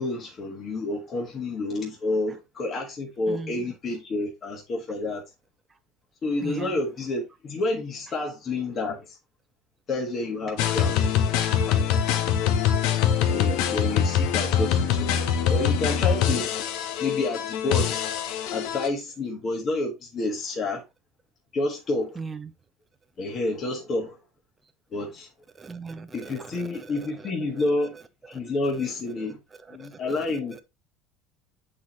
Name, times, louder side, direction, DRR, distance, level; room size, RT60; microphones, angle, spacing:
voice 1, 0.0-5.2 6.2-9.2 9.9-12.2 13.2-16.5 17.0-18.0 18.5-20.8 21.5-22.2 23.2-24.2 24.9-25.3 26.1-28.0 28.3-29.4 29.7-30.6, left 2 dB, 30° left, 1.5 m, -29 dB
voice 2, 3.3-3.6 6.4-6.8 22.2-22.5 25.5-27.3 27.6-28.0 29.7-30.4, right 4 dB, 15° right, 0.5 m, -39 dB
sound 1, 10.6-18.9, left 8 dB, 70° left, 0.9 m, -24 dB
8.3 x 4.4 x 3.1 m
cardioid pair, 150°, 0 cm